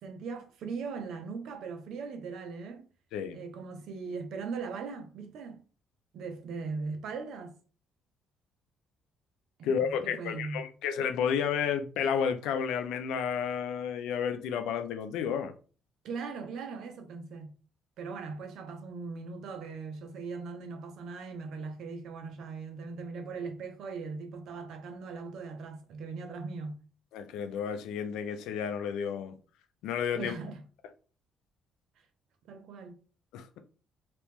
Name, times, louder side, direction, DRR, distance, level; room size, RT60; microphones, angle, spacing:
voice 1, 0.0-2.9 3.3-5.6 6.1-7.5 9.6-10.7 16.0-17.5 18.0-26.8 30.1-30.6 32.5-33.0, right 4 dB, 70° right, 0.8 m, -39 dB
voice 2, 9.6-15.5 27.1-29.3 29.8-30.3 33.3-33.6, left 7 dB, 90° left, 0.5 m, -31 dB
3.0 x 2.9 x 3.5 m
cardioid pair, 120°, 0 cm